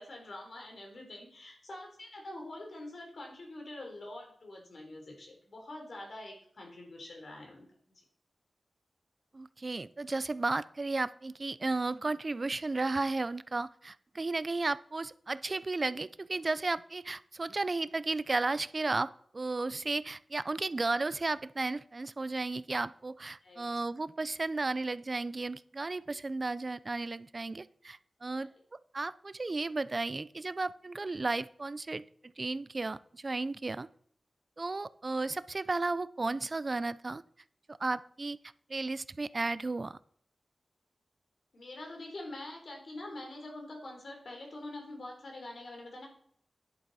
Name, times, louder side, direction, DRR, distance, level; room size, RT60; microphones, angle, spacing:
voice 1, 0.0-8.0 23.4-23.7 28.3-28.5 41.5-46.1, left 1 dB, 70° left, 2 dB, 3.5 m, -45 dB
voice 2, 9.3-28.5 28.9-32.0 32.4-33.9 34.6-37.2 37.7-38.4 38.7-40.0, right 3 dB, 45° right, 17 dB, 0.5 m, -34 dB
10.5 x 7.8 x 4.1 m, 0.63 s
cardioid pair, 55°, 0 cm